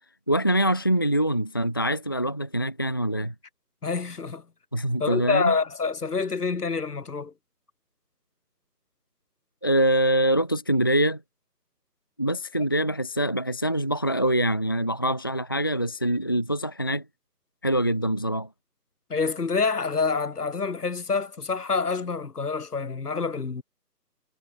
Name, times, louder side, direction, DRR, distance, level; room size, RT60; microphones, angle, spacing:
voice 1, 0.3-3.3 4.7-5.5 9.6-11.2 12.2-17.0 17.6-18.5, right 1 dB, 15° left, 0.8 m, -24 dB
voice 2, 3.8-4.4 5.0-7.3 19.1-23.6, left 4 dB, 65° left, 5.3 m, -27 dB
figure-of-eight pair, 165°, 49 cm